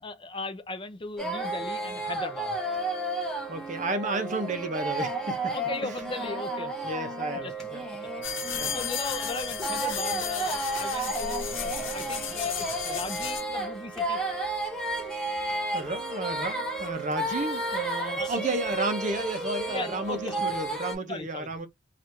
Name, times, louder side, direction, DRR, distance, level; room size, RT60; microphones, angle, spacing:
voice 1, 0.0-2.6 5.5-6.9 7.3-7.7 8.2-8.3 8.6-14.2 18.0-18.6 19.7-20.5 21.1-21.7, left 3 dB, 25° left, 0.5 m, -37 dB
sound 1, 1.2-20.9, right 2 dB, 5° left, 0.9 m, -32 dB
voice 2, 3.5-5.5 5.8-5.9 6.8-7.8 8.5-8.7 15.7-21.7, right 2 dB, 40° right, 0.6 m, -32 dB
sound 2, 8.2-13.4, left 8 dB, 75° left, 1.0 m, -34 dB
3.2 x 2.4 x 2.9 m
head